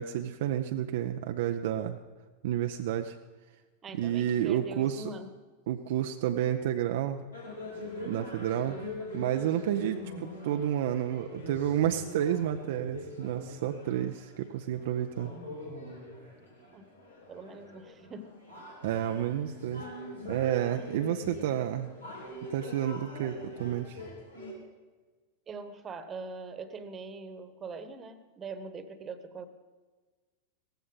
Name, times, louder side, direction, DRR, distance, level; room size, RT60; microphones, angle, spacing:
voice 1, 0.0-2.0 2.4-3.2 4.0-5.1 5.7-7.2 8.1-8.8 9.1-15.3 18.8-19.8 20.2-21.9 22.5-24.0, right 10 dB, 55° right, 6 dB, 0.6 m, -30 dB
voice 2, 3.8-5.3 16.7-16.9 17.3-18.5 25.5-29.5, right 4 dB, 25° right, 11 dB, 1.2 m, -42 dB
sound 1, 7.3-24.5, left 1 dB, 85° left, 3.7 m, -43 dB
17.0 x 15.0 x 4.0 m, 1.3 s
figure-of-eight pair, 90°, 0 cm